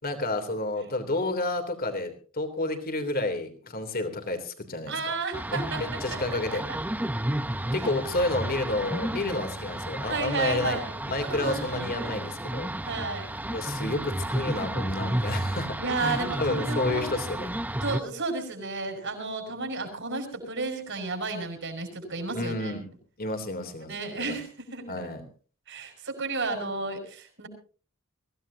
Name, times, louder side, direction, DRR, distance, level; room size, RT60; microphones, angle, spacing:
voice 1, 0.0-5.0 5.5-6.6 7.7-10.8 11.1-12.7 13.5-17.6 22.3-22.9 23.2-23.9 24.2-24.4 24.9-25.2, left 2 dB, 45° left, 7 dB, 3.2 m, -30 dB
voice 2, 4.9-6.8 10.1-12.2 12.9-13.3 15.8-17.1 17.8-22.7 23.9-25.1 25.7-27.5, right 3 dB, 60° right, 5 dB, 7.0 m, -33 dB
sound 1, 5.3-18.0, right 1 dB, 10° right, 0.7 m, -32 dB
24.0 x 16.5 x 2.8 m, 0.39 s
head